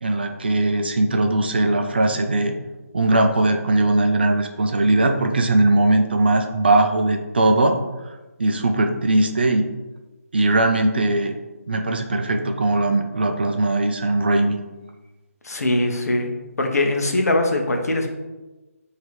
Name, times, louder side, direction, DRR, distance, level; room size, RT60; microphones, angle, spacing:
voice 1, 0.0-2.6 2.9-7.7 8.4-9.7 10.3-11.3 11.7-14.6, right 2 dB, 40° right, 5 dB, 0.4 m, -19 dB
voice 2, 15.4-16.3 16.6-18.1, left 1 dB, 80° left, 3 dB, 0.8 m, -21 dB
4.8 x 2.8 x 3.1 m, 1.1 s
hypercardioid pair, 175°, 8 cm